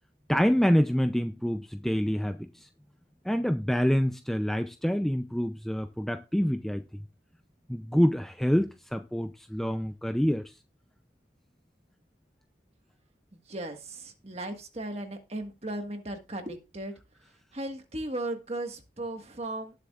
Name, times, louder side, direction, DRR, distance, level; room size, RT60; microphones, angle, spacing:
voice 1, 0.3-2.7 3.2-6.8 7.7-10.5, equal, ahead, 0.4 m, -26 dB
voice 2, 13.3-16.9 17.5-19.7, right 1 dB, 35° right, 1.6 m, -36 dB
18.5 x 7.0 x 2.4 m
head